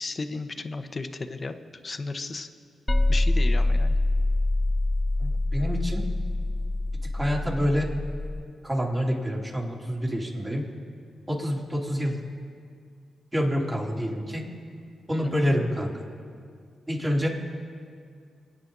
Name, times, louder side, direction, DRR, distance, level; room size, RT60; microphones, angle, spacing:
voice 1, 0.0-1.5 1.8-2.5 3.1-4.0 15.2-15.6, left 3 dB, 40° left, 8 dB, 1.1 m, -34 dB
sound 1, 2.9-8.4, left 2 dB, 20° left, 0.8 m, -25 dB
voice 2, 5.2-6.0 7.1-7.9 8.6-10.6 11.3-12.2 13.3-14.4 15.1-15.9 16.9-17.3, equal, 20° right, -3 dB, 3.8 m, -27 dB
26.5 x 9.2 x 4.1 m, 2.2 s
supercardioid pair, 50°, 0 cm